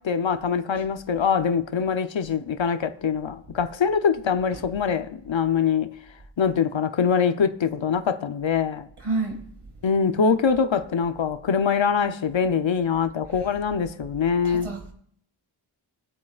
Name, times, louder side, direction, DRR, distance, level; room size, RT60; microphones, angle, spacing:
voice 1, 0.0-5.9 6.4-8.9 9.8-14.7, left 6 dB, 65° left, 0.8 m, -23 dB
voice 2, 9.0-9.4 14.4-14.9, right 3 dB, 80° right, 2.2 m, -28 dB
21.5 x 8.5 x 2.4 m
wide cardioid pair, 55°, 49 cm